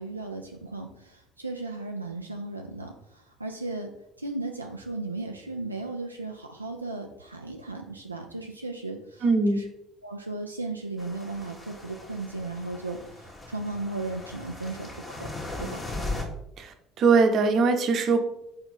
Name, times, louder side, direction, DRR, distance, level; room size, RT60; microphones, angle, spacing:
voice 1, 0.0-3.9 4.2-9.2 9.5-9.6 10.0-15.3 15.6-15.8, right 2 dB, 90° right, 2 dB, 0.4 m, -36 dB
voice 2, 9.2-9.6 16.6-18.2, right 4 dB, 45° right, 7 dB, 0.9 m, -21 dB
sound 1, 11.0-16.2, left 2 dB, 25° left, 1.6 m, -38 dB
4.8 x 4.3 x 5.1 m, 0.79 s
figure-of-eight pair, 55°, 0 cm